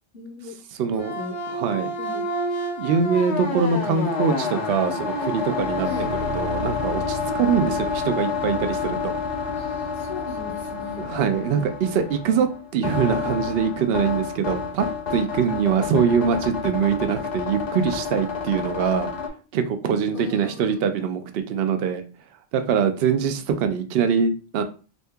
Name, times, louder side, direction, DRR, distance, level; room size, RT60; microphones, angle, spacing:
voice 1, 0.1-0.6 0.9-1.4 2.0-2.3 5.8-6.1 9.5-11.7 20.1-20.8 22.9-23.2, left 3 dB, 55° left, 0 dB, 0.7 m, -38 dB
voice 2, 0.8-1.1 1.5-1.9 2.8-5.9 6.3-9.1 11.0-19.1 19.5-22.0 22.5-24.6, right 6 dB, 65° right, 8 dB, 0.7 m, -23 dB
sound 1, 1.0-19.3, left 4 dB, 70° left, 1.0 m, -29 dB
2.7 x 2.6 x 3.4 m, 0.36 s
omnidirectional pair, 1.3 m